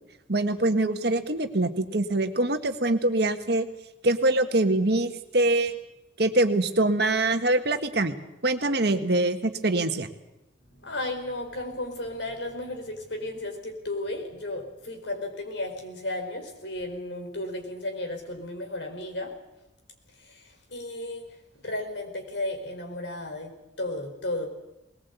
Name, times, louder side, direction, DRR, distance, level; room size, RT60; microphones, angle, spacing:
voice 1, 0.3-3.6 4.0-5.7 6.2-8.1 8.4-10.1, right 2 dB, 60° right, 8 dB, 1.5 m, -24 dB
voice 2, 10.7-19.3 20.2-21.3 21.6-24.5, left 1 dB, 75° left, 4 dB, 4.5 m, -34 dB
20.5 x 19.5 x 8.3 m, 0.94 s
head